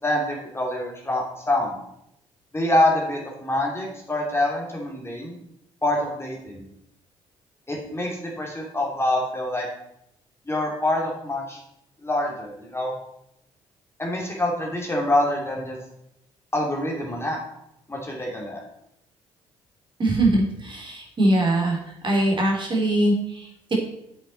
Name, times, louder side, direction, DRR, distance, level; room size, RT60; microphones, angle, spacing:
voice 1, 0.0-1.8 2.5-5.3 5.8-6.6 7.7-9.7 10.5-11.6 12.0-13.0 14.0-15.8 16.5-17.4 17.9-18.6, left 1 dB, 15° left, -1 dB, 2.9 m, -25 dB
voice 2, 20.0-21.8 22.0-23.7, right 1 dB, 35° right, -1 dB, 3.2 m, -22 dB
8.6 x 7.4 x 4.3 m, 0.79 s
hypercardioid pair, 45°, 14 cm